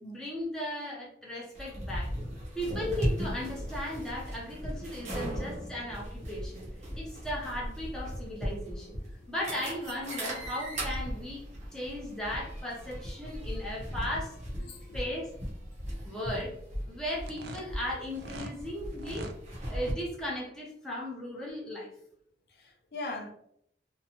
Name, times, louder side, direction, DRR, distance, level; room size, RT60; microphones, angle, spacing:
voice 1, 0.0-2.1 2.6-6.7 7.0-9.0 9.3-11.4 11.7-14.3 14.9-15.3 16.0-16.5 16.8-19.3 19.7-21.9, left 1 dB, 5° left, 0.7 m, -36 dB
sound 1, 1.6-19.9, equal, 40° right, 0.7 m, -37 dB
voice 2, 9.0-9.3 14.6-15.1 15.9-16.0 22.5-23.3, left 2 dB, 60° left, 0.5 m, -42 dB
sound 2, 17.2-18.6 18.9-19.4, right 2 dB, 65° right, 0.4 m, -42 dB
2.7 x 2.2 x 2.8 m
head